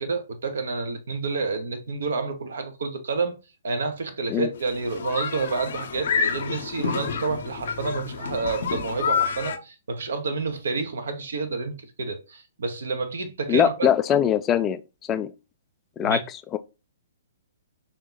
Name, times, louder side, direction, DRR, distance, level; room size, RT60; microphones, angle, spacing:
voice 1, 0.0-3.4 3.6-13.9 16.0-16.2, right 4 dB, 65° right, 0.8 m, -29 dB
sound 1, 4.6-9.6, left 6 dB, 60° left, 0.6 m, -28 dB
voice 2, 13.5-14.8 15.1-15.3 16.0-16.2 16.5-16.6, left 9 dB, 20° left, 0.3 m, -21 dB
3.6 x 2.9 x 3.8 m
figure-of-eight pair, 120°, 0 cm